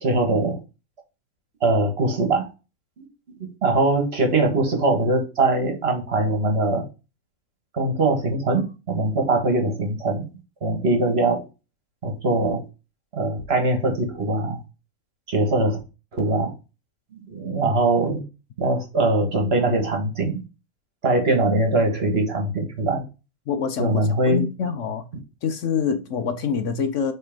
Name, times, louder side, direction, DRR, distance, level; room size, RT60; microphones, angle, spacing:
voice 1, 0.0-0.6 1.6-2.5 3.0-3.1 3.6-6.8 7.7-10.3 10.6-11.4 12.0-12.6 13.1-14.6 15.3-15.8 16.1-16.5 17.3-18.2 18.6-20.4 21.0-23.0 23.8-24.4, right 2 dB, 45° right, 1.7 m, -22 dB
voice 2, 23.5-24.0 24.3-25.1 25.4-27.1, left 6 dB, 65° left, 1.0 m, -25 dB
5.5 x 3.5 x 5.2 m
omnidirectional pair, 1.5 m